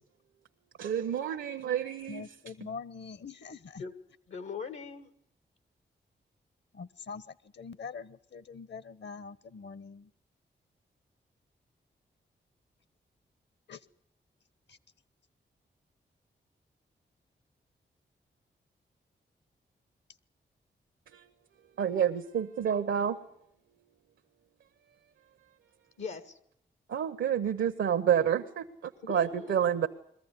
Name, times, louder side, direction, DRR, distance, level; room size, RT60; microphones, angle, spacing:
voice 1, 0.8-2.2 21.1-21.2 21.8-23.2 26.9-29.9, right 8 dB, 85° right, 6 dB, 0.9 m, -29 dB
voice 2, 2.1-3.8 6.7-10.1 13.7-13.8 14.7-14.8, left 5 dB, 60° left, 19 dB, 1.0 m, -44 dB
voice 3, 4.3-5.1 26.0-26.4 29.0-29.7, left 5 dB, 90° left, 12 dB, 1.6 m, -40 dB
21.5 x 14.5 x 9.6 m, 0.73 s
supercardioid pair, 40°, 20 cm